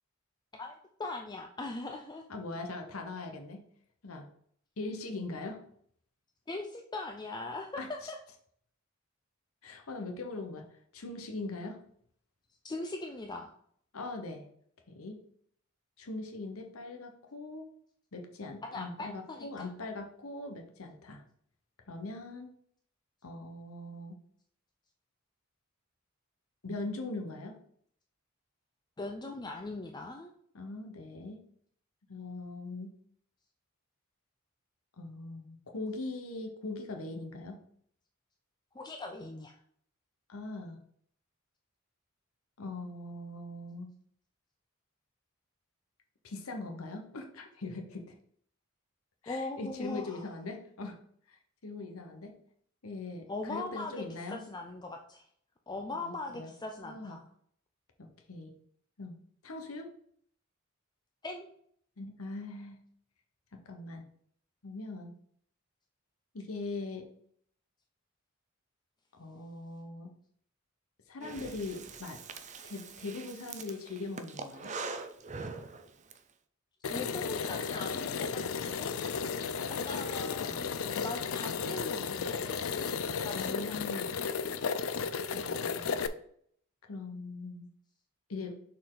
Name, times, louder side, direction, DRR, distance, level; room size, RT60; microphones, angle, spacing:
voice 1, 0.5-2.2 6.5-8.2 12.6-13.5 18.6-19.7 29.0-30.3 38.7-39.6 49.2-50.2 53.3-55.3 55.7-57.2 61.2-61.5 76.9-79.0 79.7-82.8 83.2-84.1, left 2 dB, 20° left, 3 dB, 0.5 m, -41 dB
voice 2, 2.3-3.6 4.0-4.3 4.8-5.6 7.8-8.1 9.6-10.7 10.9-11.8 13.9-14.5 14.9-15.2 16.0-17.7 18.1-21.2 21.9-22.5 23.2-24.2 26.6-27.6 30.5-31.4 32.1-32.9 35.0-37.6 40.3-40.8 42.6-43.9 46.2-48.1 49.2-51.0 51.3-52.4 52.8-54.4 55.9-56.5 56.8-57.2 58.3-58.5 59.0-59.2 59.4-59.9 62.0-62.8 63.5-64.0 64.6-65.1 66.3-67.1 69.1-70.1 71.1-72.2 72.6-74.7 80.4-80.7 83.3-84.1 85.3-85.9 86.9-87.7 88.3-88.6, left 2 dB, 85° left, 5 dB, 1.0 m, -41 dB
Breathing, 71.2-76.2, right 4 dB, 35° right, 0.5 m, -43 dB
sound 1, 76.8-86.1, left 5 dB, 70° left, 0.5 m, -34 dB
6.5 x 4.3 x 3.8 m, 0.64 s
head